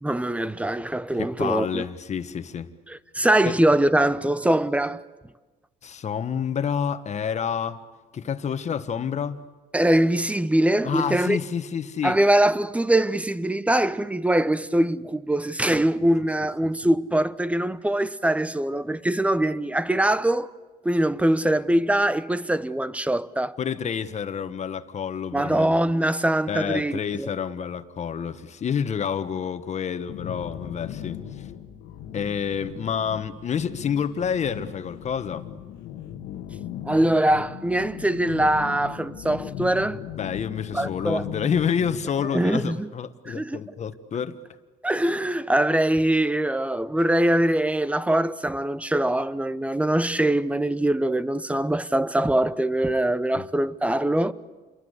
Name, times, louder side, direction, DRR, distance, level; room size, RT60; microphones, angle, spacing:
voice 1, 0.0-1.8 2.9-5.0 9.7-11.4 12.0-20.5 20.8-23.6 25.3-27.3 36.8-40.0 40.7-41.2 42.3-42.9 43.3-43.6 44.8-54.3, right 1 dB, 10° right, 0.9 m, -23 dB
voice 2, 1.2-2.7 3.4-3.6 5.8-7.8 8.1-9.4 10.8-12.2 23.6-25.7 26.5-31.5 32.1-35.4 40.2-44.4 53.3-53.4, left 7 dB, 40° left, 1.5 m, -28 dB
sound 1, 30.1-42.0, left 10 dB, 85° left, 1.7 m, -38 dB
28.5 x 23.5 x 8.3 m
cardioid pair, 110°, 17 cm